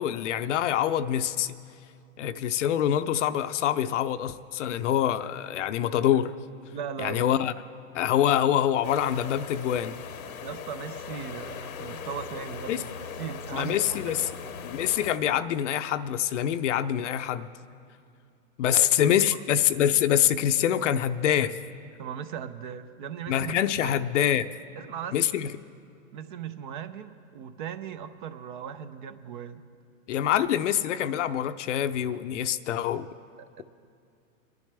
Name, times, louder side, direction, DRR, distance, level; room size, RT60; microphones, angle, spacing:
voice 1, 0.0-1.6 2.2-6.3 7.0-7.5 7.9-10.0 12.7-12.8 13.5-14.3 14.6-17.5 18.6-21.6 23.3-24.5 25.1-25.5 30.1-33.1, left 10 dB, 60° left, 12 dB, 0.6 m, -25 dB
voice 2, 6.7-7.2 10.4-12.9 13.2-14.5 18.7-18.9 22.0-23.6 24.8-25.1 26.1-29.6 33.6-33.7, right 8 dB, 35° right, 12 dB, 0.5 m, -38 dB
sound 1, 8.8-15.2, left 6 dB, 85° left, 1.0 m, -39 dB
23.5 x 10.5 x 3.4 m, 2.5 s
hypercardioid pair, 150°, 41 cm